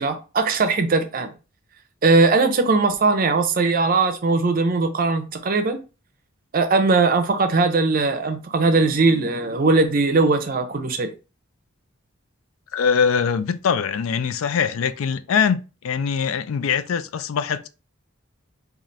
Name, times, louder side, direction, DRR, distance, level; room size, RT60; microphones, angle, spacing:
voice 1, 0.0-1.3 2.0-5.8 6.5-11.1, right 3 dB, 40° right, 0.5 m, -19 dB
voice 2, 12.7-17.7, left 6 dB, 75° left, 0.4 m, -22 dB
3.9 x 2.4 x 3.1 m
head